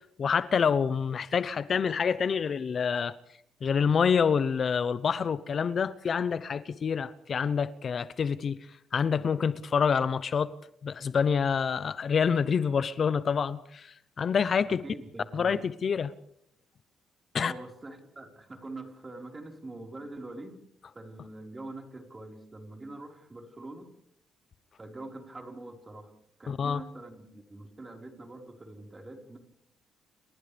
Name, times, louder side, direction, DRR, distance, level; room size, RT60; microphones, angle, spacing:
voice 1, 0.2-3.1 3.6-8.6 8.9-10.5 10.8-14.8 15.3-16.1 17.3-17.5 26.5-26.8, left 6 dB, 50° left, 0.8 m, -27 dB
voice 2, 14.7-15.6 17.4-20.6 20.9-23.9 24.8-26.1 26.4-29.4, right 2 dB, 25° right, 4.6 m, -44 dB
30.0 x 26.0 x 3.4 m
cardioid pair, 90°, 0 cm